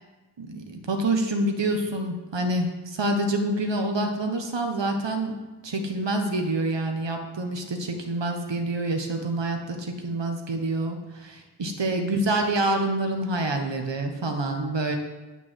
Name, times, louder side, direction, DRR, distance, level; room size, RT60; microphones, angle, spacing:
voice 1, 0.4-5.4 5.6-15.0, right 2 dB, 85° right, 4 dB, 1.4 m, -27 dB
9.9 x 6.0 x 7.5 m, 1.2 s
wide cardioid pair, 75°, 42 cm